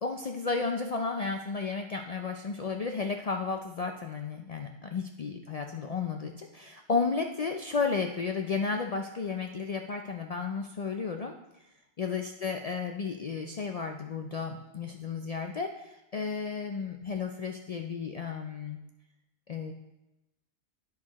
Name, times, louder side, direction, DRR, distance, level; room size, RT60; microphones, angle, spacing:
voice 1, 0.0-11.3 12.0-18.8 19.5-19.7, left 4 dB, 55° left, 3 dB, 0.4 m, -33 dB
10.5 x 5.3 x 4.1 m, 0.95 s
omnidirectional pair, 1.1 m